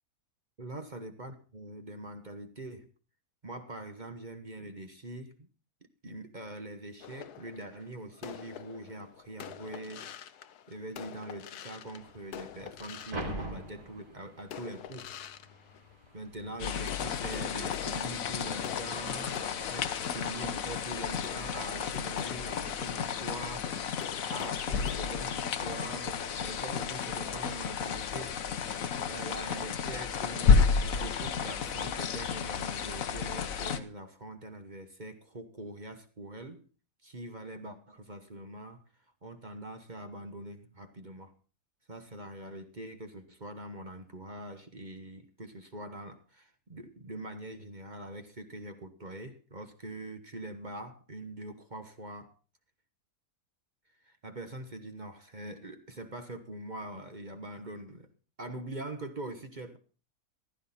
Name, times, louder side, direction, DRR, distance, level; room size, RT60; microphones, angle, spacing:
voice 1, 0.6-2.9 3.4-5.5 6.0-10.1 10.7-15.1 16.1-23.7 24.3-28.3 29.0-36.7 37.0-38.8 39.2-41.3 41.9-52.3 54.0-58.1 58.4-59.8, right 1 dB, 30° right, 1.2 m, -43 dB
sound 1, 7.0-13.9 14.5-16.5 16.8-25.3, left 9 dB, 85° left, 1.4 m, -46 dB
sound 2, 12.0-20.0, right 1 dB, 80° right, 4.0 m, -46 dB
sound 3, 16.6-33.8, left 6 dB, 65° left, 1.3 m, -31 dB
15.0 x 12.5 x 4.2 m
omnidirectional pair, 1.6 m